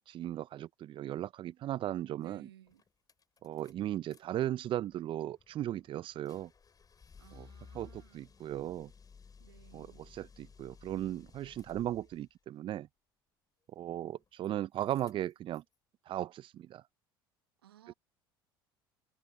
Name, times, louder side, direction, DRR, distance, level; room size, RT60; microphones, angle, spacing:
voice 1, 0.0-2.5 3.4-6.5 7.3-7.5 7.7-8.9 9.7-9.9 10.1-12.9 13.7-15.6 16.1-16.8, right 12 dB, 45° right, 0.4 m, -37 dB
sound 1, 2.2-2.3 2.7-4.2 4.5-12.3 13.8-14.5 14.7-15.7, left 5 dB, 30° left, 7.7 m, -58 dB
voice 2, 2.2-2.8 7.2-8.3 9.4-10.1 17.6-17.9, right 12 dB, 85° right, 1.1 m, -59 dB
hypercardioid pair, 70°, 12 cm